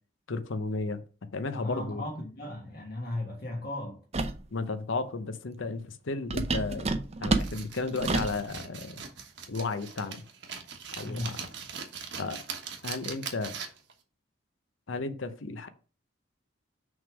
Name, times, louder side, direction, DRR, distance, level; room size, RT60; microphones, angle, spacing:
voice 1, 0.3-1.0 1.3-2.0 4.5-9.0 9.5-10.2 11.0-11.3 12.2-12.4 12.8-13.6 14.9-15.7, left 3 dB, 75° left, 0.7 m, -34 dB
voice 2, 1.5-4.0 11.0-11.4, left 1 dB, 50° left, 1.3 m, -36 dB
sound 1, 4.1-4.4 6.3-8.4, right 3 dB, 30° right, 0.5 m, -29 dB
sound 2, 7.4-13.9, right 6 dB, 60° right, 1.2 m, -41 dB
6.3 x 3.6 x 6.0 m
head